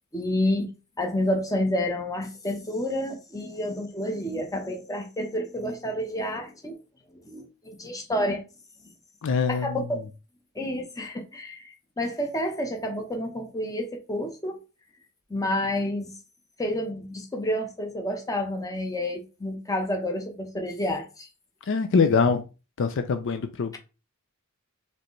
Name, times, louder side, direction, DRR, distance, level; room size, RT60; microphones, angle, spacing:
voice 1, 0.1-0.7 1.0-6.8 7.1-8.4 9.5-10.0 10.5-14.6 15.3-16.1 16.6-21.3, left 1 dB, 15° left, 0.9 m, -29 dB
voice 2, 9.2-9.9 21.7-22.4 22.8-23.8, left 5 dB, 55° left, 0.4 m, -23 dB
5.0 x 3.4 x 3.1 m
head